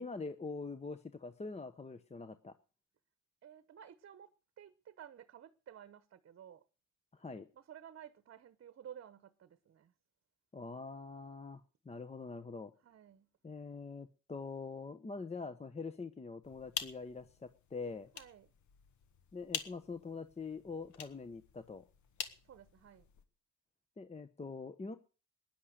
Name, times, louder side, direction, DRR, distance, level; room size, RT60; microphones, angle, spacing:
voice 1, 0.0-2.5 7.1-7.5 10.5-12.7 13.4-18.1 19.3-21.8 24.0-25.0, left 4 dB, 20° left, 0.9 m, -44 dB
voice 2, 3.4-6.6 7.5-9.9 12.8-13.3 18.1-18.5 22.4-23.1, right 9 dB, 50° right, 1.0 m, -54 dB
sound 1, 16.4-23.3, left 7 dB, 70° left, 1.6 m, -47 dB
16.0 x 10.5 x 6.5 m
cardioid pair, 90°, 30 cm